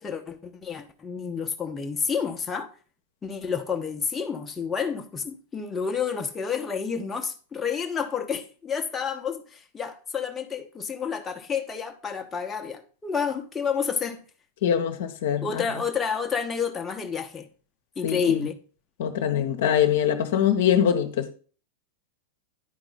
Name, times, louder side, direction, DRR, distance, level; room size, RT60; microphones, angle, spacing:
voice 1, 0.0-2.7 3.2-14.2 15.4-17.5 18.0-18.5, left 6 dB, 15° left, 0.9 m, -29 dB
voice 2, 14.6-15.6 18.0-18.4 19.0-21.3, left 9 dB, 55° left, 0.9 m, -23 dB
10.5 x 4.9 x 3.9 m
figure-of-eight pair, 90°, 0 cm